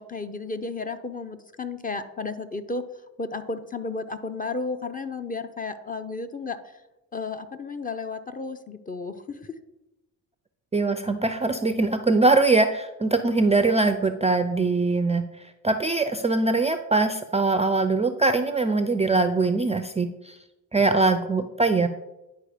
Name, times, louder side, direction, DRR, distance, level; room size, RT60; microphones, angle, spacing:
voice 1, 0.0-2.8 3.2-6.6 7.1-9.5, left 3 dB, 20° left, 9 dB, 0.7 m, -33 dB
voice 2, 10.7-15.3 15.6-20.4 20.7-21.9, right 3 dB, 15° right, 9 dB, 0.4 m, -22 dB
10.0 x 4.6 x 5.0 m, 0.97 s
cardioid pair, 85°, 40 cm